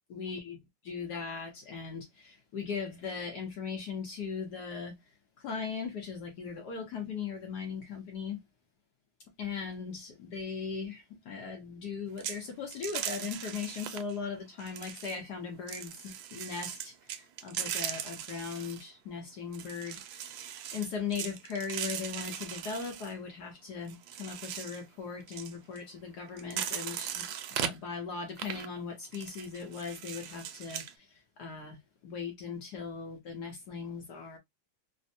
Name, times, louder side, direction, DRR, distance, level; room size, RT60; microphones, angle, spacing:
voice 1, 0.1-0.6 0.8-5.0 5.4-8.4 9.4-34.4, left 5 dB, 65° left, 1.1 m, -39 dB
sound 1, 12.2-12.4 12.7-14.2 14.6-15.2 15.7-18.8 19.5-23.1 23.9-24.8 25.2-25.8 26.3-27.8 28.4-28.7 29.0-30.9, right 10 dB, 80° right, 1.3 m, -39 dB
3.4 x 2.1 x 2.5 m
omnidirectional pair, 2.2 m